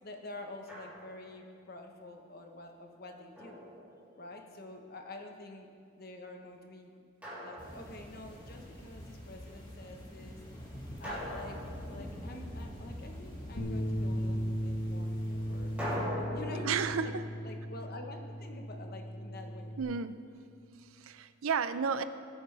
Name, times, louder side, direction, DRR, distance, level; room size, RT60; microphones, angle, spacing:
voice 1, 0.0-3.6 4.2-7.1 7.4-11.6 11.9-15.8 16.2-16.7 17.0-17.1 17.4-19.8, left 2 dB, 45° left, 3 dB, 1.1 m, -48 dB
Drum, 0.7-1.4 3.4-4.4 7.2-8.4 11.0-12.7 15.8-18.8, left 1 dB, 5° right, 2.9 m, -42 dB
sound 1, 7.6-16.0, equal, 20° left, 2.2 m, -45 dB
Bass guitar, 13.6-19.8, equal, 65° left, 1.6 m, -36 dB
voice 2, 16.6-17.2 19.8-20.2 20.8-22.0, right 6 dB, 80° right, 12 dB, 0.5 m, -32 dB
20.0 x 8.7 x 3.4 m, 2.4 s
head